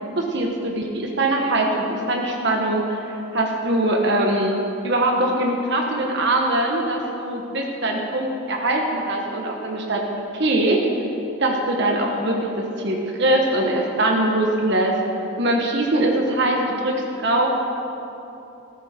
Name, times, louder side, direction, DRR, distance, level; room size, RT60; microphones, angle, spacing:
voice 1, 0.2-3.0 3.3-4.6 4.8-10.0 10.3-10.8 11.4-15.0 15.4-17.6, right 1 dB, 55° right, 0 dB, 1.4 m, -22 dB
15.5 x 15.0 x 4.4 m, 2.9 s
head